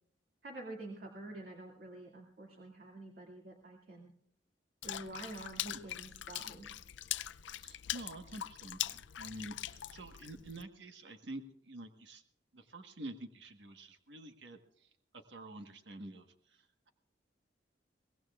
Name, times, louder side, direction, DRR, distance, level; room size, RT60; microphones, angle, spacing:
voice 1, 0.4-4.1 4.8-6.7, right 2 dB, 55° right, -1 dB, 2.3 m, -48 dB
Water / Splash splatter, 4.8-10.6, left 12 dB, 80° left, 0.5 m, -42 dB
voice 2, 7.6-12.2 12.5-14.9 15.3-16.9, right 1 dB, 70° right, 6 dB, 1.4 m, -48 dB
23.0 x 18.5 x 2.4 m, 0.68 s
head